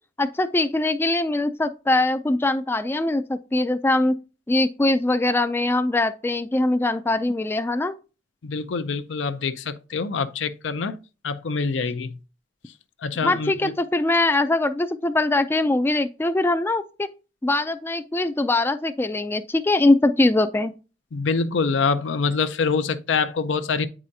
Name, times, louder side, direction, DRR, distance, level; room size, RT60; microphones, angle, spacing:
voice 1, 0.2-4.2 4.5-8.0 13.2-17.1 17.4-20.7, left 2 dB, 10° left, 0.3 m, -22 dB
voice 2, 8.4-11.0 11.2-12.1 13.0-13.7 21.1-23.9, left 5 dB, 75° left, 0.5 m, -25 dB
8.6 x 4.8 x 2.7 m
head